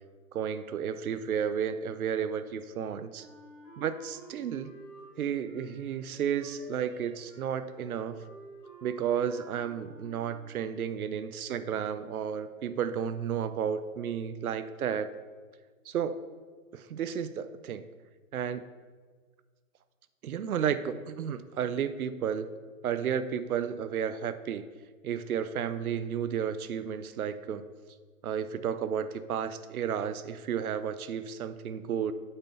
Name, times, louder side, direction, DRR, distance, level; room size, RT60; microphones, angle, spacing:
voice 1, 0.3-3.3 3.8-4.7 5.2-8.3 8.8-15.1 15.9-16.2 16.7-17.9 18.3-18.7 20.2-22.5 22.8-24.7 25.0-27.7 28.2-32.1, right 8 dB, 75° right, 12 dB, 0.6 m, -32 dB
Wind instrument woodwind instrument, 3.1-10.7, right 1 dB, ahead, 2.4 m, -52 dB
8.7 x 4.5 x 5.5 m, 1.5 s
hypercardioid pair, 170°, 44 cm